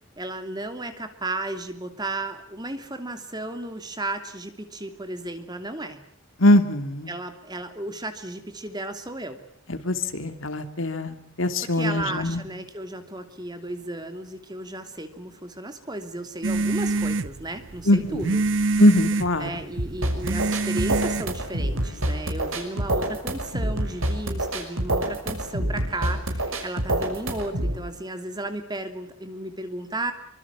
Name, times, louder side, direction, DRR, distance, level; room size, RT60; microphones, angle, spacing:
voice 1, 0.2-6.0 7.1-9.4 11.6-18.4 19.4-30.1, right 2 dB, 20° right, 7 dB, 2.9 m, -34 dB
voice 2, 6.4-7.1 9.7-12.5 17.9-18.4 18.8-19.5, left 1 dB, 75° left, 9 dB, 2.9 m, -22 dB
sound 1, 16.4-21.9, right 3 dB, 60° right, 1.0 m, -27 dB
sound 2, 19.8-27.8, right 1 dB, 80° right, 6.0 m, -27 dB
25.0 x 25.0 x 7.4 m, 0.67 s
head